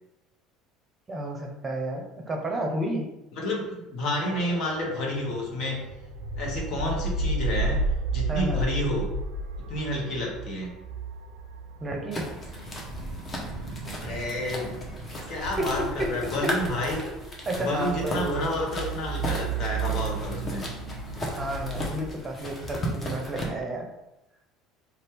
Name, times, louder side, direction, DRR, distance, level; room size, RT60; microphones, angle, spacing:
voice 1, 1.1-3.1 8.3-8.7 11.8-12.3 15.6-16.1 16.4-16.5 17.5-18.5 21.2-23.9, right 1 dB, 25° right, 2 dB, 0.7 m, -31 dB
voice 2, 3.4-5.8 6.4-7.8 8.1-9.1 9.7-10.7 14.0-14.8 15.3-17.1 17.6-20.7, left 1 dB, 55° left, -1 dB, 0.9 m, -30 dB
sound 1, 4.3-22.1, right 3 dB, 75° right, 0.4 m, -34 dB
sound 2, 12.1-23.5, equal, 30° left, 0.9 m, -36 dB
2.7 x 2.3 x 3.4 m, 0.93 s
hypercardioid pair, 70°, 0 cm